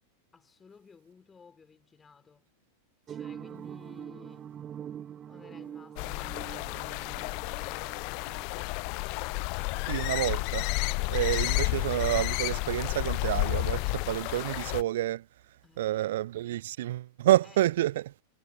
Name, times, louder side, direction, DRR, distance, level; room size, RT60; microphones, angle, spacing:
voice 1, 0.3-2.5 3.1-4.5 5.2-8.4 15.6-16.2 17.4-17.6, left 5 dB, 15° left, 3.3 m, -56 dB
sound 1, 3.1-9.3, right 9 dB, 25° right, 0.9 m, -44 dB
sound 2, 6.0-14.8, left 36 dB, 45° left, 0.4 m, -31 dB
voice 2, 9.9-10.7 11.1-15.2 15.8-18.1, right 14 dB, 55° right, 0.8 m, -28 dB
figure-of-eight pair, 90°, 0 cm